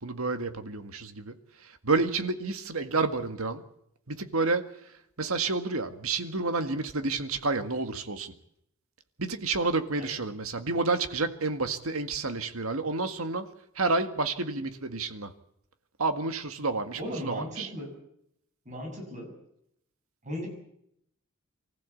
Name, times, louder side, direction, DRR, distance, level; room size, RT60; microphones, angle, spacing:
voice 1, 0.0-3.6 4.1-8.3 9.2-13.5 13.8-15.3 16.0-17.7, right 3 dB, 80° right, 9 dB, 1.9 m, -30 dB
voice 2, 16.9-17.9 18.6-19.3 20.2-20.5, equal, 35° right, 1 dB, 7.7 m, -37 dB
25.0 x 15.0 x 8.5 m, 0.75 s
head